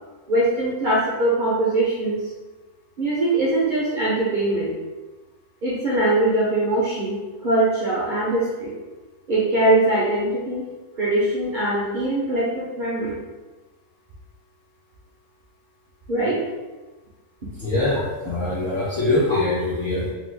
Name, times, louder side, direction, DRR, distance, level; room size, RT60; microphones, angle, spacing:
voice 1, 0.3-2.2 3.0-4.7 5.6-8.7 9.3-10.6 11.0-13.2 16.1-16.4 19.3-19.4, right 2 dB, 65° right, -8 dB, 0.5 m, -22 dB
voice 2, 17.6-20.1, left 2 dB, 60° left, -9 dB, 0.5 m, -23 dB
3.0 x 2.2 x 3.2 m, 1.2 s
omnidirectional pair, 1.7 m